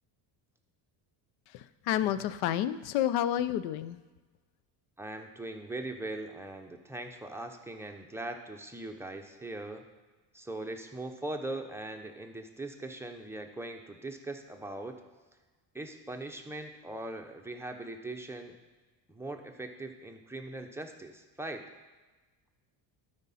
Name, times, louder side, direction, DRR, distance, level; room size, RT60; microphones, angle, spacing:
voice 1, 1.5-4.0, left 11 dB, 85° left, 14 dB, 0.6 m, -30 dB
voice 2, 5.0-9.8 10.3-15.0 15.7-18.5 19.1-21.6, right 2 dB, 5° right, 3 dB, 0.7 m, -40 dB
12.0 x 5.2 x 4.2 m, 1.3 s
cardioid pair, 110°, 48 cm